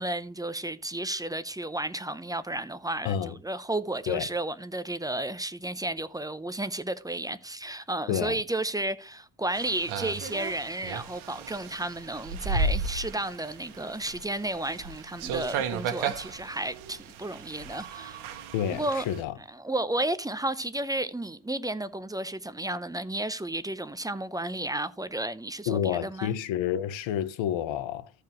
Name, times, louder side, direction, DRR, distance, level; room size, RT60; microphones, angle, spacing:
voice 1, 0.0-18.2 18.7-19.1 19.5-26.3, right 1 dB, 10° right, 0.6 m, -32 dB
sound 1, 9.5-19.2, right 4 dB, 75° right, 1.4 m, -35 dB
voice 2, 18.5-19.3 25.7-28.1, left 10 dB, 65° left, 1.0 m, -29 dB
14.0 x 4.9 x 3.0 m
cardioid pair, 85°, 48 cm